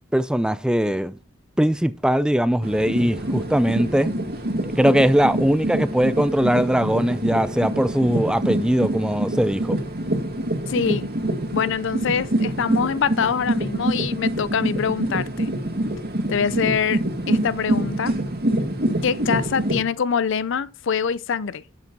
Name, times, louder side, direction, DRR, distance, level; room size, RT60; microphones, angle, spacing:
voice 1, 0.1-1.1 1.6-4.1 4.6-9.8, equal, 5° right, 0.4 m, -20 dB
sound 1, 2.6-19.8, right 1 dB, 50° right, 2.0 m, -26 dB
voice 2, 10.7-11.1 11.5-15.5 16.3-17.0 17.3-18.2 19.0-21.6, left 6 dB, 65° left, 0.5 m, -24 dB
8.2 x 7.4 x 5.2 m
head